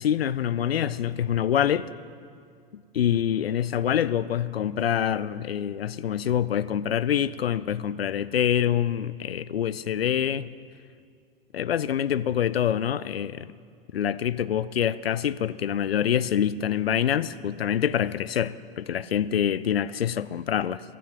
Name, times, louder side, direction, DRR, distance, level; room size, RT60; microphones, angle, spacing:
voice 1, 0.0-1.9 2.7-10.5 11.5-13.5 13.9-20.8, left 9 dB, 90° left, 0.5 m, -26 dB
13.5 x 10.0 x 9.2 m
figure-of-eight pair, 85°, 29 cm